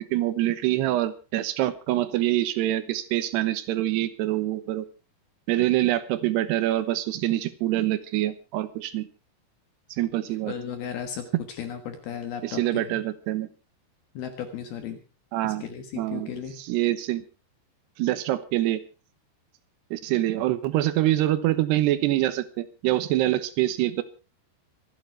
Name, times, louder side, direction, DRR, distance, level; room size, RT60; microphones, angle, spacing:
voice 1, 0.0-4.9 5.5-9.1 10.0-10.5 11.3-11.4 12.4-13.5 15.3-15.6 15.9-16.3 16.6-17.2 18.0-18.8 19.9-24.0, right 14 dB, 75° right, 13 dB, 2.9 m, -25 dB
voice 2, 10.5-13.0 14.1-15.0 15.4-16.6, left 8 dB, 65° left, 7 dB, 3.0 m, -35 dB
25.5 x 9.1 x 4.6 m, 0.34 s
omnidirectional pair, 5.3 m